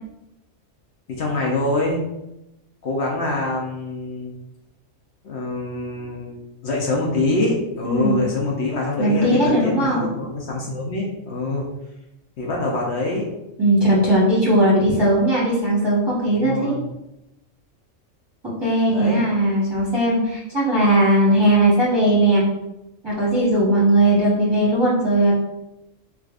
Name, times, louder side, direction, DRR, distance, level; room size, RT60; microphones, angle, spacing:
voice 1, 1.1-2.0 2.8-4.3 5.2-11.7 12.4-13.3 16.3-16.8 18.9-19.3, left 2 dB, 60° left, -2 dB, 0.9 m, -25 dB
voice 2, 7.8-8.2 9.0-10.0 13.6-16.7 18.6-22.4 23.0-25.3, right 1 dB, 20° right, -7 dB, 0.8 m, -18 dB
4.6 x 2.4 x 2.4 m, 0.90 s
omnidirectional pair, 1.3 m